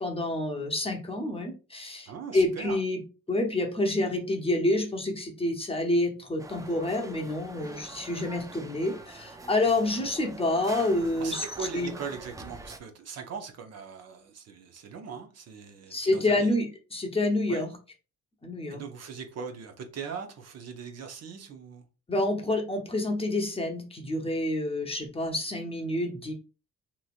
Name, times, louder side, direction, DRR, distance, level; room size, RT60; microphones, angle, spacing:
voice 1, 0.0-3.0 3.3-11.4 11.7-11.9 15.9-17.7 18.4-18.8 22.1-26.3, left 2 dB, 20° left, 0.7 m, -28 dB
voice 2, 2.1-2.8 11.2-16.5 17.5-17.6 18.7-21.8, right 6 dB, 55° right, 0.6 m, -40 dB
sound 1, 6.4-12.8, right 3 dB, 10° right, 0.3 m, -45 dB
3.0 x 2.6 x 2.4 m
cardioid pair, 90°, 30 cm